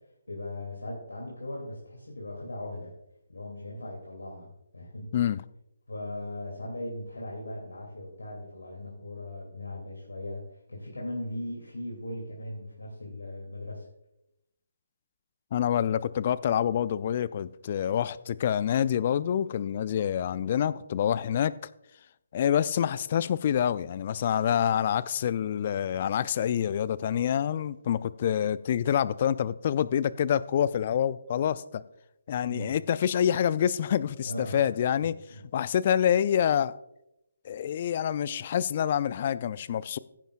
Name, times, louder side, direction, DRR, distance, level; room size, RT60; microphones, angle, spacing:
voice 1, 0.3-2.9 3.3-5.1 5.9-10.4 10.7-13.8 32.4-32.8 34.2-34.7 35.0-35.4, left 1 dB, 75° left, 2.8 m, -38 dB
voice 2, 15.5-21.5 22.3-31.8 32.3-35.1 35.5-36.7 37.4-40.0, left 9 dB, 40° left, 0.4 m, -27 dB
15.5 x 10.5 x 2.5 m
figure-of-eight pair, 140°, 0 cm